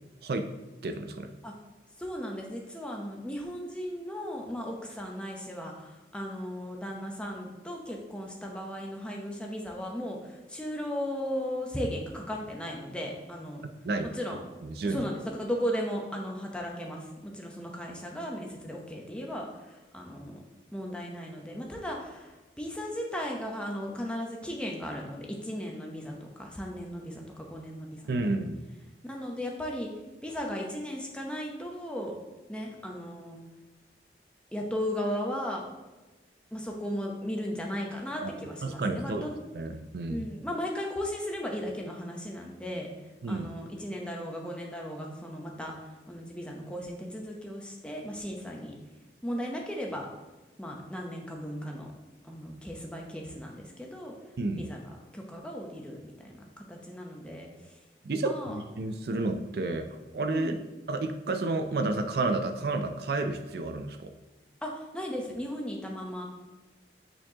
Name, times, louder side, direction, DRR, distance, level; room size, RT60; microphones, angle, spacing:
voice 1, 0.8-1.3 13.8-14.1 14.6-15.0 28.1-28.6 38.2-38.3 38.6-39.3 39.5-40.3 43.2-43.5 54.4-54.7 58.0-60.6 60.9-64.1, right 2 dB, 65° right, 7 dB, 0.4 m, -31 dB
voice 2, 2.0-13.6 14.0-14.4 14.8-20.4 20.7-28.4 29.0-29.9 30.2-32.2 32.5-33.4 34.5-35.6 36.5-39.4 40.1-42.9 43.3-45.7 46.1-48.7 49.2-50.1 50.6-51.9 52.2-54.1 54.6-57.8 58.2-58.6 60.3-60.6 64.6-66.2, equal, 5° left, 0 dB, 0.8 m, -36 dB
8.7 x 4.4 x 2.9 m, 1.2 s
head